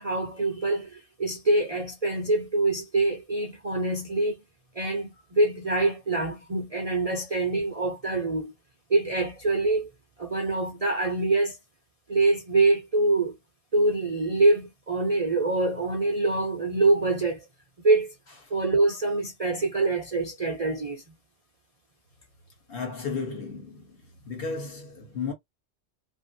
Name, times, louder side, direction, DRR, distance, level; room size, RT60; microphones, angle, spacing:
voice 1, 0.0-4.4 4.8-8.5 8.9-9.9 10.2-11.6 12.1-13.4 13.7-17.4 17.8-18.1 18.5-21.0, right 2 dB, 40° right, 0.5 m, -25 dB
voice 2, 22.7-24.0 24.3-25.3, left 5 dB, 50° left, 1.1 m, -33 dB
2.6 x 2.5 x 2.6 m
omnidirectional pair, 1.3 m